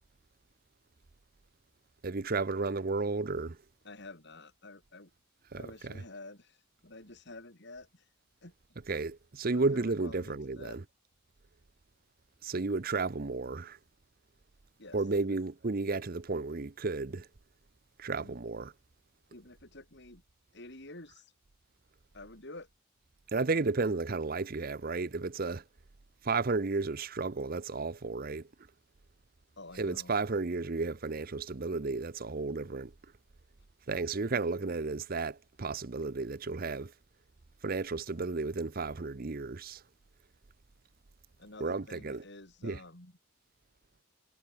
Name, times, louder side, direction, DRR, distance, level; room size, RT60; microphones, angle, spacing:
voice 1, 2.0-3.6 5.5-6.0 8.9-10.8 12.4-13.8 14.9-17.3 18.0-18.7 23.3-25.6 26.2-28.5 29.8-32.9 33.9-36.9 37.6-39.8 41.6-42.2 42.6-42.8, right 3 dB, 45° right, 0.7 m, -33 dB
voice 2, 3.8-5.1 5.6-8.1 8.4-8.5 9.5-10.8 14.8-15.0 15.3-15.4 18.2-18.4 19.3-20.2 20.5-21.3 22.1-22.7 29.6-30.1 41.4-43.1, left 2 dB, 55° left, 4.5 m, -49 dB
head